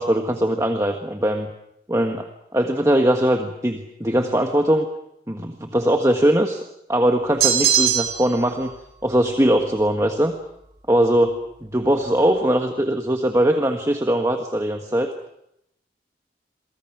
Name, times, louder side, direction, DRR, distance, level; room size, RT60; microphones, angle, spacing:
voice 1, 0.0-1.5 1.9-2.3 2.5-4.9 5.3-6.6 6.9-8.7 9.0-10.3 10.9-15.1, right 1 dB, 15° right, 5 dB, 1.5 m, -20 dB
sound 1, 7.4-8.4, right 8 dB, 65° right, 5.3 m, -20 dB
28.5 x 23.5 x 6.1 m, 0.79 s
head